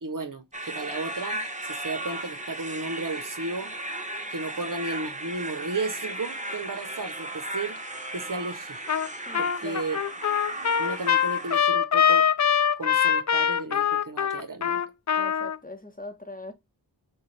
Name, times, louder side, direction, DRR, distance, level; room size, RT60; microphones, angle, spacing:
voice 1, 0.0-3.7 4.3-7.8 8.1-8.8 9.4-10.0 10.8-12.3 12.8-14.8, right 3 dB, 45° right, 0.8 m, -34 dB
sound 1, 0.5-11.6, right 1 dB, 15° right, 0.9 m, -36 dB
Trumpet, 8.9-9.1 9.3-15.6, left 8 dB, 40° left, 0.5 m, -23 dB
voice 2, 9.3-9.8 15.2-16.5, left 2 dB, 20° left, 1.1 m, -41 dB
6.5 x 2.3 x 3.2 m
wide cardioid pair, 45°, 44 cm